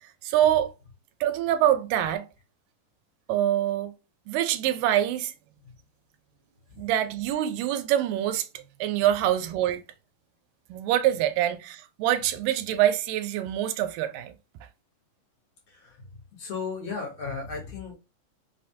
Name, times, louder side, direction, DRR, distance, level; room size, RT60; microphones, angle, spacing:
voice 1, 0.0-0.7 1.2-2.3 3.3-3.9 4.3-5.3 6.8-9.8 10.7-14.3, right 12 dB, 85° right, 2.2 m, -25 dB
voice 2, 15.7-16.0 16.4-17.9, left 5 dB, 65° left, 1.9 m, -35 dB
5.2 x 2.1 x 2.6 m
omnidirectional pair, 3.8 m